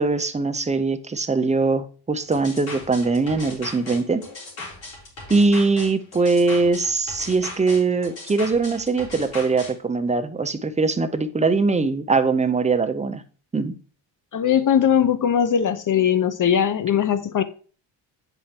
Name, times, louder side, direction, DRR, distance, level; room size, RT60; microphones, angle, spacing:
voice 1, 0.0-4.2 5.3-13.2 13.5-13.8, right 3 dB, 15° right, 0.6 m, -21 dB
sound 1, 2.3-9.7, left 3 dB, 70° left, 3.4 m, -37 dB
voice 2, 14.3-17.4, left 8 dB, 40° left, 0.8 m, -20 dB
9.0 x 4.3 x 2.9 m
cardioid pair, 80°, 49 cm